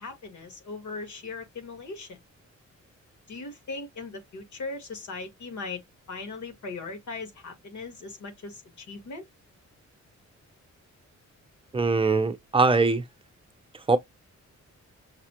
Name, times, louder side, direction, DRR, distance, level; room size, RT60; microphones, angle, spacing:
voice 1, 0.0-2.2 3.3-5.8 6.1-9.2, left 3 dB, 75° left, 1.9 m, -39 dB
voice 2, 11.7-13.0 13.9-14.0, right 3 dB, 20° right, 0.6 m, -22 dB
6.6 x 2.3 x 2.8 m
wide cardioid pair, 155°, 30 cm